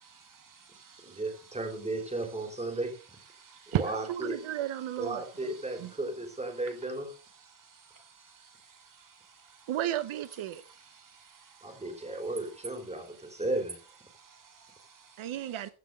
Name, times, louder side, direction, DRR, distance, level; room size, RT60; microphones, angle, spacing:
voice 1, 0.1-1.6 2.2-2.5 3.3-3.8 4.4-4.7 5.2-6.0 6.5-6.9 7.3-9.7 10.5-12.4 12.9-13.4 14.1-15.6, right 6 dB, 40° right, 3.3 m, -56 dB
voice 2, 1.0-3.0 3.7-4.4 5.0-7.1 11.6-13.8, right 2 dB, 15° right, 3.6 m, -34 dB
voice 3, 3.7-5.5 5.8-5.9 9.7-10.6 15.2-15.7, right 12 dB, 85° right, 1.0 m, -33 dB
15.5 x 5.9 x 6.4 m
wide cardioid pair, 145°, 47 cm